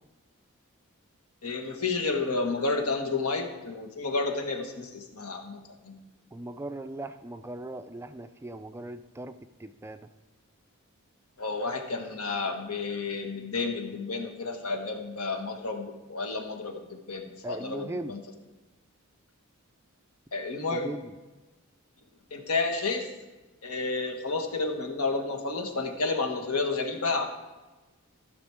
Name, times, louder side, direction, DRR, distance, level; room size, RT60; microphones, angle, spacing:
voice 1, 1.4-6.0 11.4-18.2 20.3-20.9 22.3-23.1 23.6-27.2, left 3 dB, 85° left, 3 dB, 1.5 m, -31 dB
voice 2, 6.3-10.1 17.4-18.2 20.7-21.2, right 1 dB, 10° right, 9 dB, 0.3 m, -39 dB
14.5 x 6.1 x 4.6 m, 1.2 s
head